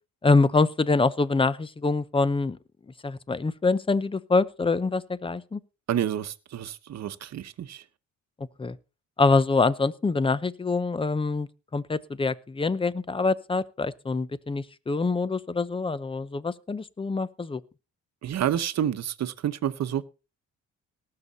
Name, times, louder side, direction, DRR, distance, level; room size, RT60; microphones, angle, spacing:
voice 1, 0.2-2.6 3.0-5.6 8.6-8.8 9.2-17.6, left 3 dB, 20° left, 0.8 m, -25 dB
voice 2, 5.9-7.8 18.2-20.0, right 10 dB, 60° right, 1.0 m, -29 dB
18.5 x 6.8 x 4.1 m
cardioid pair, 90°, 30 cm